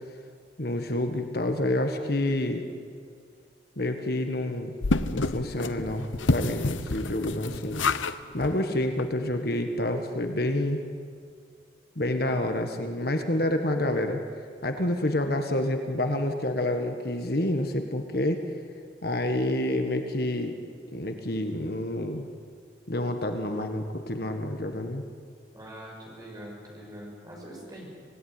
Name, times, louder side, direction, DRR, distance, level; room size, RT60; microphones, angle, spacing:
voice 1, 0.6-2.6 3.8-4.7 5.1-10.8 11.9-14.2 14.6-18.4 19.0-20.5 20.9-22.3 22.9-25.0, left 1 dB, 50° left, 5 dB, 1.5 m, -28 dB
sound 1, 4.8-8.2 8.4-8.5 9.0-9.1 9.3-9.4, left 3 dB, 85° left, 0.8 m, -28 dB
voice 2, 25.5-27.9, equal, 20° right, -2 dB, 6.6 m, -43 dB
26.5 x 17.5 x 9.6 m, 2.2 s
head